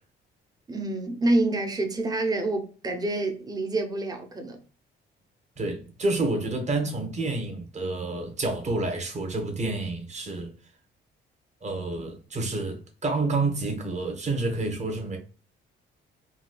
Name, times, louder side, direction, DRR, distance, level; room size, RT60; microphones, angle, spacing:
voice 1, 0.7-4.6, right 2 dB, 20° right, 0.7 m, -27 dB
voice 2, 5.6-10.5 11.6-15.2, right 2 dB, 35° right, 1.1 m, -29 dB
4.0 x 2.3 x 2.2 m
cardioid pair, 90°, 20 cm